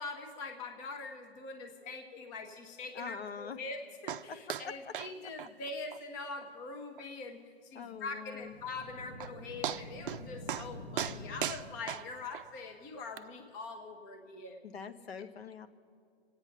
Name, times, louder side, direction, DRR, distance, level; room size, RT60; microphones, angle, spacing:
voice 1, 0.0-14.6, left 3 dB, 20° left, 5 dB, 0.7 m, -43 dB
voice 2, 2.9-3.6 4.3-4.4 4.6-4.7 7.7-8.5 14.6-15.7, left 6 dB, 70° left, 10 dB, 1.0 m, -43 dB
sound 1, 4.1-4.2 4.5-4.7 4.9-5.1 5.4-5.5 5.9-6.0 6.4-6.5 7.0-7.1 8.8-8.9 9.2-9.3 9.6-10.2 10.5-10.7 11.0-12.5 13.2-13.3, right 10 dB, 55° right, 0.5 m, -37 dB
sound 2, 8.4-12.2, left 1 dB, 55° left, 1.3 m, -47 dB
25.5 x 8.9 x 5.7 m, 2.3 s
hypercardioid pair, 155°, 32 cm